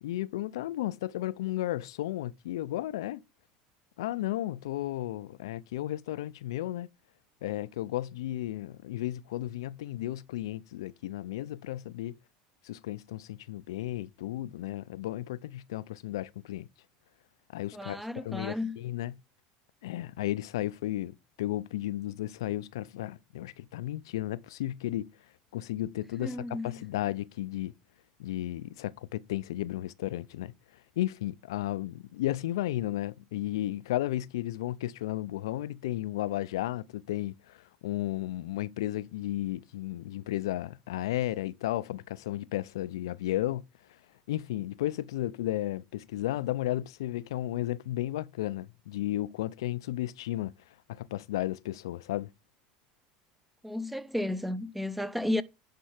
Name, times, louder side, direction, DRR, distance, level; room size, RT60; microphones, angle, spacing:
voice 1, 0.0-3.2 4.0-6.9 7.4-12.2 12.6-16.7 17.5-19.1 19.8-25.1 25.5-26.4 26.6-27.7 28.2-30.5 31.0-43.6 44.3-50.5 50.9-52.3, left 14 dB, 85° left, 0.5 m, -34 dB
voice 2, 17.7-18.8 26.2-26.9 53.6-55.4, left 1 dB, 5° right, 0.7 m, -33 dB
10.5 x 4.5 x 5.8 m
supercardioid pair, 100°, 2 cm